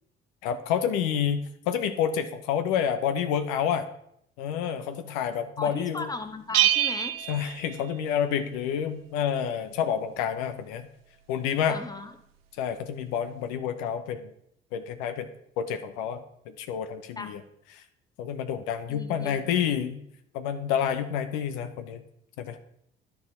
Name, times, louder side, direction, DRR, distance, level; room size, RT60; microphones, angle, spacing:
voice 1, 0.4-1.4 1.7-3.9 4.4-6.1 7.3-10.9 11.3-11.8 12.6-14.3 14.7-15.3 15.6-17.4 17.7-17.8 18.2-20.0 20.3-22.0 22.4-22.6, left 8 dB, 70° left, 9 dB, 0.6 m, -29 dB
voice 2, 5.6-7.1 11.7-12.1 17.2-17.3 18.9-19.6, left 3 dB, 15° left, 8 dB, 1.0 m, -37 dB
Bell, 6.5-8.4, right 12 dB, 85° right, 0.5 m, -26 dB
11.0 x 4.5 x 4.1 m, 0.73 s
hypercardioid pair, 55°, 29 cm